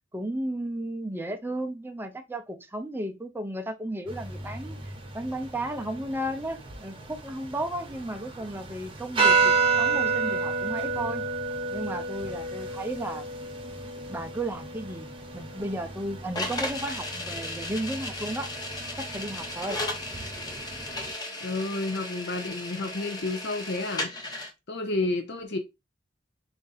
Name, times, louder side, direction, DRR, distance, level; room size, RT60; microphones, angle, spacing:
voice 1, 0.1-4.8 5.1-11.3 11.7-13.2 14.1-18.5 19.0-19.8 25.0-25.1, right 1 dB, 10° right, 0.5 m, -34 dB
sound 1, 4.1-21.1, right 4 dB, 30° right, 0.9 m, -31 dB
sound 2, 16.4-24.5, left 1 dB, 20° left, 0.9 m, -35 dB
voice 2, 21.4-24.1 24.7-25.6, left 2 dB, 65° left, 0.6 m, -30 dB
3.6 x 2.6 x 3.9 m
head